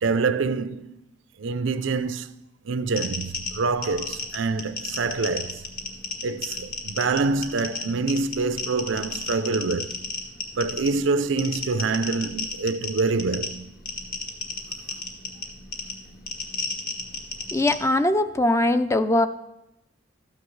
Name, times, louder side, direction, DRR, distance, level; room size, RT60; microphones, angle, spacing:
voice 1, 0.0-1.0 1.4-2.3 2.6-5.6 6.2-10.0 10.6-13.7, right 4 dB, 80° right, 0.5 m, -26 dB
Geiger Tick Low, 2.9-17.7, left 3 dB, 50° left, 1.4 m, -34 dB
voice 2, 17.5-19.3, left 1 dB, 15° left, 0.4 m, -21 dB
13.0 x 9.2 x 3.2 m
head